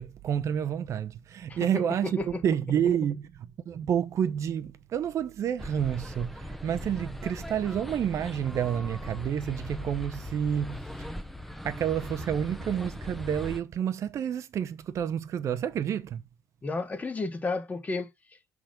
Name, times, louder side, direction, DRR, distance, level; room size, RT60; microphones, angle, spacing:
voice 1, 0.0-10.9 11.6-16.2, right 9 dB, 45° right, 0.8 m, -29 dB
voice 2, 2.0-2.4 16.6-18.1, left 3 dB, 20° left, 1.1 m, -32 dB
sound 1, 5.6-13.6, left 1 dB, ahead, 0.6 m, -39 dB
6.0 x 3.6 x 5.1 m
cardioid pair, 120°, 7 cm